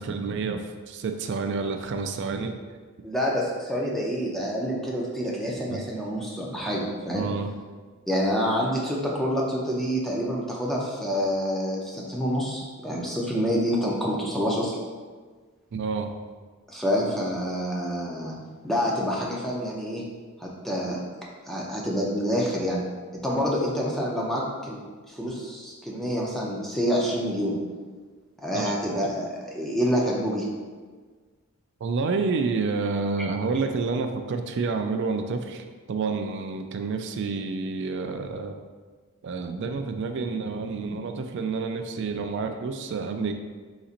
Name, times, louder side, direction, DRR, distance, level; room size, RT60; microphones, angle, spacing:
voice 1, 0.0-2.6 5.7-5.8 7.1-7.5 15.7-16.1 28.5-28.7 31.8-38.6 39.2-43.3, right 4 dB, 55° right, 6 dB, 0.3 m, -29 dB
voice 2, 3.0-7.3 8.1-14.7 16.7-18.4 18.6-20.0 20.4-21.0 21.5-22.8 23.2-24.8 25.1-27.6 28.4-30.5, equal, ahead, -4 dB, 0.5 m, -27 dB
4.0 x 4.0 x 2.5 m, 1.5 s
head